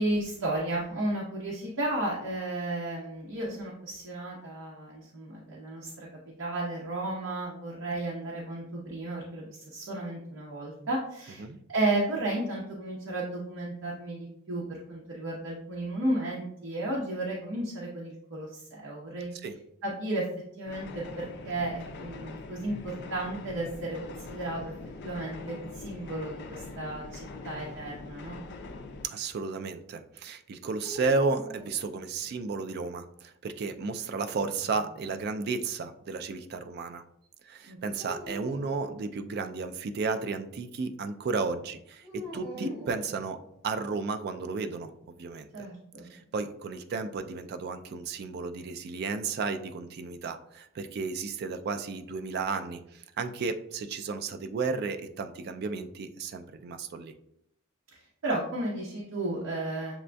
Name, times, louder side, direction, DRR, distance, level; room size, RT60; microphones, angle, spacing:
voice 1, 0.0-6.1 6.4-19.3 19.8-20.3 20.6-24.7 25.0-28.4 37.7-37.8 42.5-42.7 45.5-46.1 57.9-59.9, right 1 dB, 60° right, -5 dB, 0.8 m, -33 dB
sound 1, 20.6-29.1, left 3 dB, 50° left, 0.4 m, -43 dB
voice 2, 29.0-37.0 37.4-43.4 43.6-44.9 45.2-45.7 46.1-57.1, right 4 dB, 45° right, 8 dB, 0.3 m, -33 dB
sound 2, 30.8-32.4 34.0-35.1 38.0-38.8 42.0-43.7, equal, 20° right, 1.0 m, -45 dB
7.1 x 2.5 x 2.2 m, 0.76 s
head